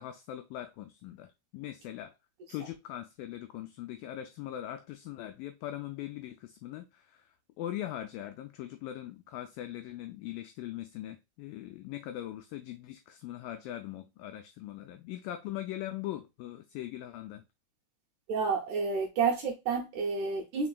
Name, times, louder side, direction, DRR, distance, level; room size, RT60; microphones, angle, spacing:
voice 1, 0.0-2.1 2.5-17.4, left 13 dB, 85° left, 2.0 m, -41 dB
voice 2, 18.3-20.7, right 5 dB, 90° right, 1.7 m, -30 dB
5.0 x 4.2 x 2.3 m
omnidirectional pair, 4.5 m